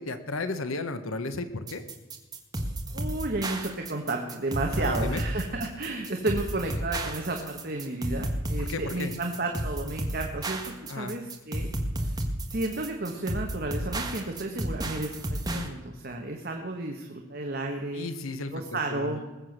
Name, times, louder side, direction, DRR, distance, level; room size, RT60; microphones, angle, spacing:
voice 1, 0.0-1.8 4.8-5.2 8.6-9.1 10.9-11.2 17.9-19.2, left 3 dB, 75° left, 10 dB, 1.1 m, -34 dB
sound 1, 1.7-15.7, right 1 dB, 20° right, 1.5 m, -32 dB
voice 2, 2.9-11.7 12.5-18.1 18.5-19.2, right 2 dB, 45° right, 3 dB, 1.3 m, -32 dB
20.0 x 7.8 x 6.6 m, 1.2 s
head